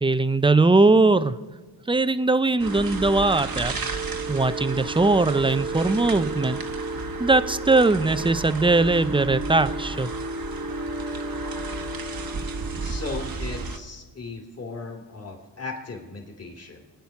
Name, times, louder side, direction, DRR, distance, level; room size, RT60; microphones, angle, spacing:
voice 1, 0.0-1.3 1.9-3.7 4.3-6.6 7.2-10.1, right 3 dB, 10° right, 13 dB, 0.6 m, -20 dB
sound 1, 2.6-13.8, right 3 dB, 55° right, 1.3 m, -31 dB
voice 2, 12.8-16.8, left 3 dB, 35° left, 1 dB, 2.9 m, -37 dB
22.0 x 9.3 x 5.9 m, 1.3 s
cardioid pair, 70°, 42 cm